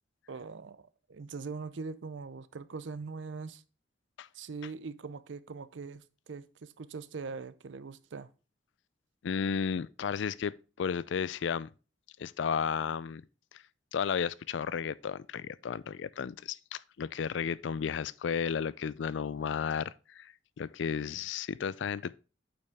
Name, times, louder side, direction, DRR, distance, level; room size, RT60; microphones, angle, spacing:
voice 1, 0.3-3.6 4.3-8.3, right 4 dB, 80° right, 0.5 m, -42 dB
voice 2, 9.2-11.7 12.2-13.2 13.5-13.6 13.9-22.2, left 6 dB, 75° left, 0.4 m, -33 dB
8.7 x 5.4 x 3.4 m
head